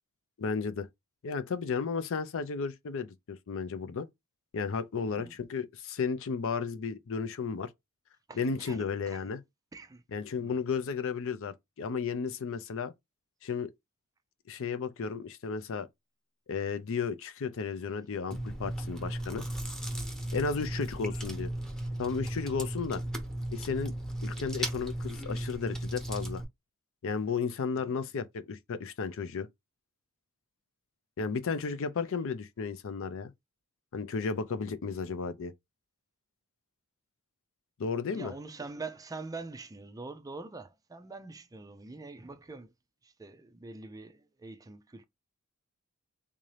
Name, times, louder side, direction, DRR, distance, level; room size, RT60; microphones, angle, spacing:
voice 1, 0.4-0.9 1.2-4.1 4.5-7.7 8.4-9.4 10.1-12.9 13.4-13.7 14.5-15.9 16.5-19.4 20.3-21.5 22.0-23.0 23.5-23.9 24.2-26.4 27.0-29.5 31.2-33.3 33.9-35.5 37.8-38.3, left 5 dB, 60° left, 0.5 m, -33 dB
voice 2, 5.1-5.4 8.3-9.2 9.7-10.0 10.4-10.6 20.5-20.6 27.8-28.0 38.1-42.7 43.0-45.0, right 3 dB, 15° right, 0.4 m, -44 dB
Chewing mastication, 18.3-26.4, right 1 dB, 5° left, 0.8 m, -36 dB
3.6 x 2.7 x 3.2 m
head